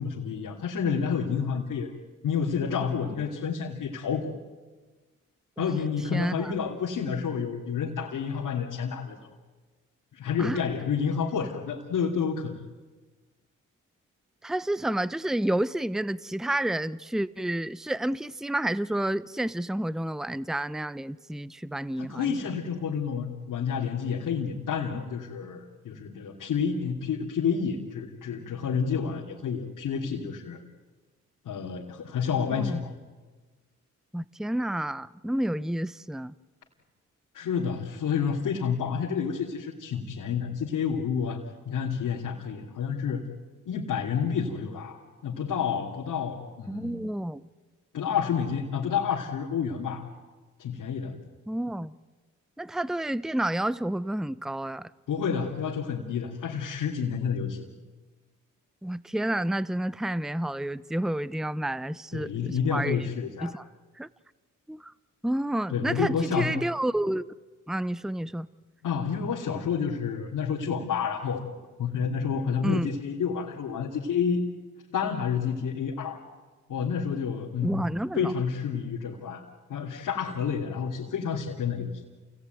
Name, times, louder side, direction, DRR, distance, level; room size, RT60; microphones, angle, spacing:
voice 1, 0.0-1.9 2.2-4.3 5.6-9.2 10.1-12.6 22.0-30.6 31.4-32.9 37.3-43.3 43.7-47.1 47.9-50.1 50.6-51.1 55.1-57.7 62.1-63.6 65.7-66.5 68.8-71.5 71.8-74.4 74.9-76.2 76.7-81.9, left 6 dB, 85° left, 2.9 m, -29 dB
voice 2, 6.1-6.5 10.4-10.6 14.4-22.3 32.5-32.8 34.1-36.3 46.7-47.4 51.5-51.9 52.6-54.9 58.8-63.1 63.4-63.6 64.0-64.1 64.7-64.9 65.2-67.3 67.7-68.5 72.6-72.9 77.6-78.3, right 1 dB, ahead, 0.8 m, -30 dB
28.0 x 18.5 x 9.3 m
supercardioid pair, 50°, 31 cm